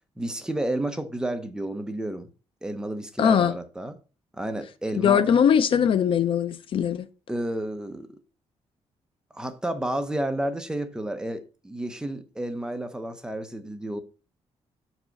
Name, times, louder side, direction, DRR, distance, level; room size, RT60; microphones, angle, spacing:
voice 1, 0.2-2.3 2.6-3.9 4.3-5.2 7.3-8.2 9.3-14.0, right 1 dB, 5° right, 0.7 m, -31 dB
voice 2, 3.2-3.5 4.9-7.1, left 8 dB, 50° left, 0.5 m, -21 dB
6.7 x 4.9 x 5.1 m
cardioid pair, 160°, 11 cm